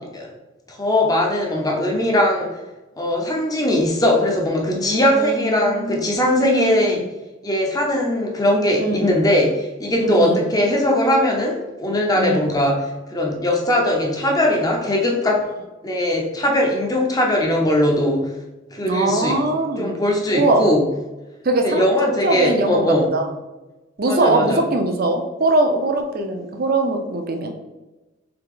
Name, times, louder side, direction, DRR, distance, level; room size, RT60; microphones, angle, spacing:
voice 1, 0.7-2.5 3.0-7.1 7.4-15.5 15.8-18.3 18.7-19.4 19.8-20.9 21.6-23.1 24.1-24.6, left 1 dB, 20° left, 1 dB, 0.7 m, -20 dB
voice 2, 4.7-7.0 8.8-9.1 10.0-10.4 12.2-12.5 18.8-20.0 20.3-20.7 21.4-23.3 24.0-27.5, right 2 dB, 50° right, 4 dB, 0.6 m, -22 dB
4.8 x 2.9 x 3.7 m, 1.1 s
head